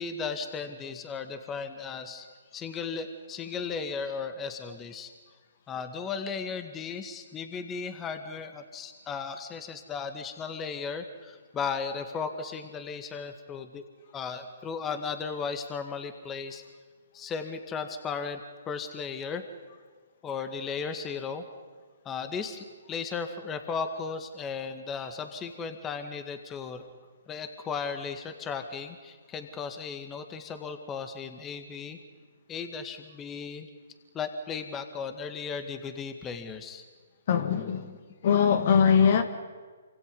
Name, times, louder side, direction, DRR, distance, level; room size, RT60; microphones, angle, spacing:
voice 1, 0.0-2.3 2.5-5.1 5.7-13.8 14.1-16.6 17.1-18.4 18.7-19.5 20.2-21.5 22.1-26.8 27.3-32.0 32.5-33.7 34.1-36.8 37.7-38.0, left 5 dB, 20° left, 8 dB, 1.8 m, -36 dB
voice 2, 37.3-37.9 38.2-39.2, left 7 dB, 50° left, 8 dB, 1.9 m, -21 dB
28.5 x 25.5 x 5.5 m, 1.5 s
figure-of-eight pair, 130°, 0 cm